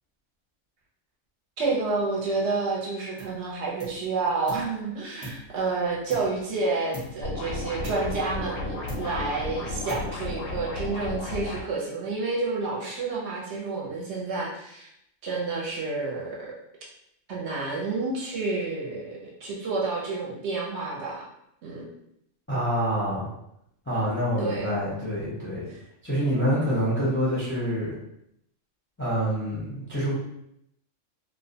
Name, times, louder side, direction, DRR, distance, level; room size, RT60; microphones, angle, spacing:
voice 1, 1.6-14.9 15.2-16.5 17.3-21.3 21.6-21.9 24.4-24.7 25.7-25.8, right 3 dB, 65° right, -3 dB, 0.8 m, -29 dB
sound 1, 3.2-3.5 3.8-4.8 5.2-6.6 6.9-7.3 7.8-8.6 8.9-9.4 9.9-10.4, right 1 dB, 25° right, 0.9 m, -42 dB
sound 2, 7.2-11.6, left 3 dB, 85° left, 1.0 m, -33 dB
voice 2, 22.5-23.3 23.9-25.6 26.0-27.9 29.0-30.1, equal, 15° left, -8 dB, 0.5 m, -26 dB
2.3 x 2.1 x 2.6 m, 0.78 s
omnidirectional pair, 1.3 m